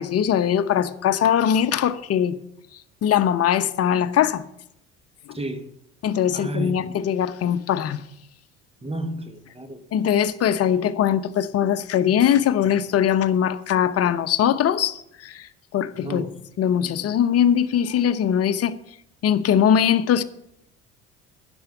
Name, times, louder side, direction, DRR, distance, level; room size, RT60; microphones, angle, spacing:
voice 1, 0.0-2.4 3.0-4.5 5.3-5.4 6.0-8.0 9.9-16.2 16.6-18.7 19.2-20.2, left 9 dB, 45° left, 0.9 m, -21 dB
voice 2, 5.3-5.7 6.3-6.9 8.8-9.8 16.0-16.3 16.8-16.9, right 1 dB, 15° right, 1.8 m, -31 dB
10.0 x 7.2 x 7.9 m
hypercardioid pair, 65°, 35 cm